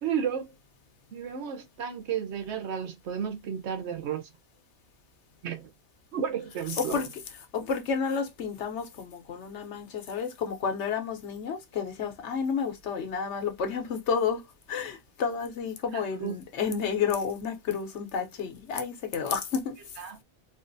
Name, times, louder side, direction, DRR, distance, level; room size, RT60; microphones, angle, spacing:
voice 1, 0.0-0.5 1.1-4.3 5.4-5.7 6.1-7.0 15.9-16.4 20.0-20.2, right 8 dB, 80° right, 1.0 m, -33 dB
voice 2, 6.5-19.8, left 6 dB, 85° left, 1.1 m, -31 dB
3.9 x 2.5 x 2.5 m
omnidirectional pair, 1.1 m